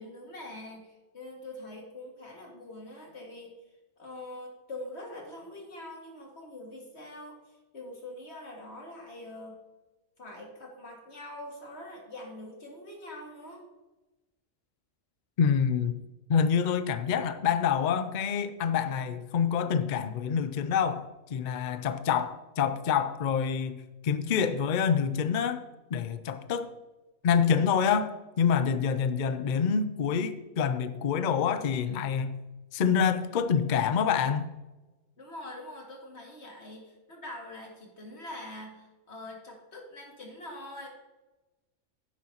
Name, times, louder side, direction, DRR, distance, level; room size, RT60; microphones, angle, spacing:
voice 1, 0.0-3.5 4.0-9.6 10.2-13.7 35.2-40.9, left 1 dB, 50° left, 0 dB, 2.3 m, -44 dB
voice 2, 15.4-15.9 16.3-25.6 25.9-26.7 27.2-32.4 32.7-34.5, left 7 dB, 70° left, 11 dB, 0.4 m, -27 dB
10.5 x 10.0 x 2.9 m, 1.1 s
omnidirectional pair, 1.5 m